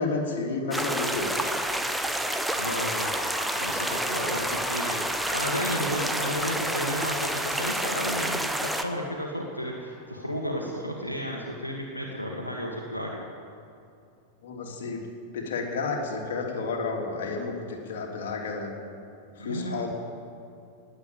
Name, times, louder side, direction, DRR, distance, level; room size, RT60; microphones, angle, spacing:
voice 1, 0.0-1.5 14.4-15.0 15.3-18.7 19.4-19.9, left 4 dB, 60° left, 0 dB, 2.9 m, -31 dB
sound 1, 0.7-8.8, right 1 dB, 5° right, 1.1 m, -29 dB
sound 2, 2.5-10.4, left 4 dB, 25° left, 1.9 m, -41 dB
voice 2, 2.6-13.3 19.4-19.9, equal, 85° left, -1 dB, 1.8 m, -33 dB
19.5 x 8.4 x 8.8 m, 2.7 s
figure-of-eight pair, 90°, 0 cm